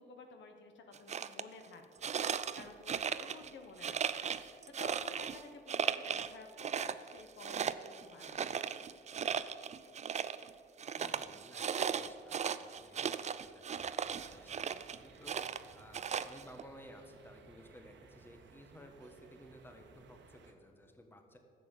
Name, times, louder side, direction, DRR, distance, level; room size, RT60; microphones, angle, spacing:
voice 1, 0.0-8.7, left 4 dB, 70° left, 5 dB, 1.3 m, -53 dB
sound 1, 0.9-1.4 2.0-3.5 3.8-5.4 5.7-6.3 6.6-10.5 10.8-15.0 15.3-16.6, right 7 dB, 35° right, 0.4 m, -37 dB
voice 2, 10.9-21.4, equal, 10° left, 5 dB, 1.3 m, -56 dB
sound 2, 14.1-20.5, right 4 dB, 65° right, 1.3 m, -60 dB
10.5 x 7.9 x 7.3 m, 2.3 s
cardioid pair, 90°, 20 cm